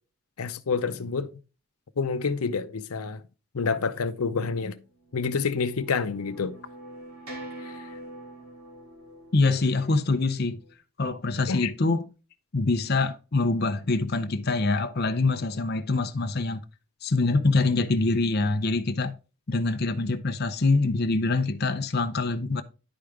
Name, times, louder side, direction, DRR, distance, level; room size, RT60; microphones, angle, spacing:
voice 1, 0.4-1.3 2.0-3.2 3.5-4.8 5.1-6.6 7.6-8.0 11.5-11.7, left 5 dB, 90° left, 0.6 m, -28 dB
sound 1, 5.0-10.7, right 1 dB, 80° right, 2.6 m, -45 dB
voice 2, 9.3-10.6 11.0-12.0 12.5-16.6 17.0-19.1 19.5-22.6, left 3 dB, 45° left, 0.6 m, -25 dB
10.5 x 5.0 x 3.5 m
head